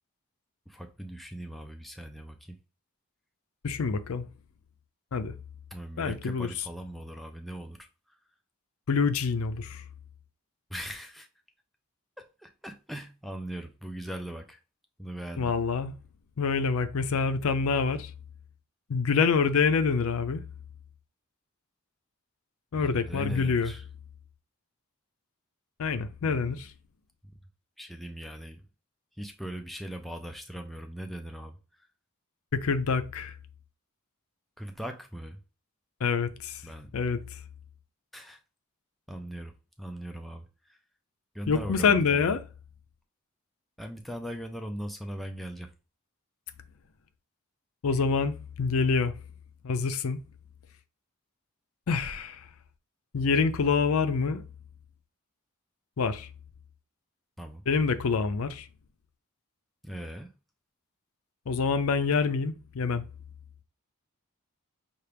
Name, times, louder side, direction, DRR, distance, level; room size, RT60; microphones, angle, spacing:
voice 1, 0.7-2.6 5.7-7.9 10.7-11.3 12.2-14.6 15.0-15.5 22.7-23.8 26.2-26.6 27.2-27.3 27.8-28.6 29.2-31.6 34.6-35.4 36.6-36.9 38.1-38.4 39.1-40.8 41.3-42.4 43.8-45.7 57.4-57.6 59.8-60.3, right 1 dB, ahead, 0.3 m, -40 dB
voice 2, 3.6-4.3 5.1-5.3 6.0-6.5 8.9-9.8 15.4-15.9 16.4-18.1 18.9-20.4 22.7-23.7 25.8-26.7 32.5-33.3 36.0-36.6 36.9-37.2 41.5-42.4 47.8-49.1 49.6-50.2 51.9-52.4 53.1-54.4 56.0-56.3 57.7-58.7 61.5-63.0, left 5 dB, 70° left, 0.5 m, -26 dB
5.7 x 2.4 x 3.3 m
head